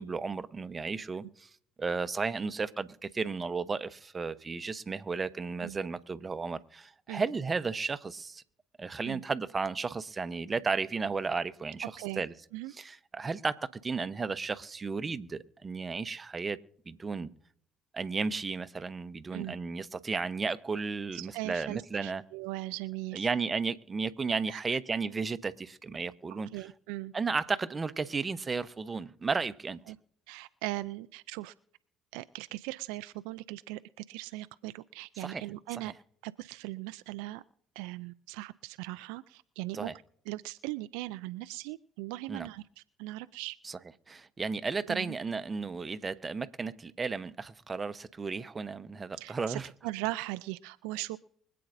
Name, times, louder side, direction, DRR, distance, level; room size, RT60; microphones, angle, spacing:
voice 1, 0.0-1.5 1.8-8.4 8.8-12.3 12.7-16.6 16.9-17.3 17.9-22.2 23.1-26.5 27.1-29.8 35.2-35.4 35.8-35.9 39.7-40.0 42.3-42.5 43.6-43.8 44.1-49.7, right 4 dB, 30° right, 0.9 m, -34 dB
voice 2, 21.1-23.3 24.5-24.6 26.5-27.1 29.9-30.0 30.3-31.5 32.1-33.8 34.1-35.9 36.2-37.4 37.8-39.9 40.3-42.6 43.0-43.6 44.9-45.1 49.2-51.2, right 19 dB, 75° right, 0.4 m, -39 dB
24.5 x 8.6 x 2.6 m
hypercardioid pair, 60°, 0 cm